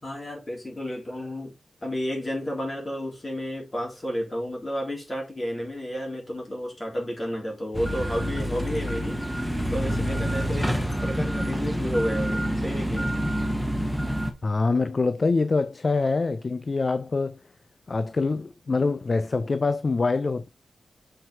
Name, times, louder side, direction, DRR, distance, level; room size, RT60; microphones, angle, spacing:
voice 1, 0.0-1.5 1.8-13.2, equal, 20° left, 3.5 m, -32 dB
sound 1, 7.7-14.3, equal, ahead, 1.2 m, -27 dB
voice 2, 14.4-17.4 17.9-20.5, left 3 dB, 40° left, 0.4 m, -25 dB
6.6 x 4.4 x 4.2 m
wide cardioid pair, 95°, 0 cm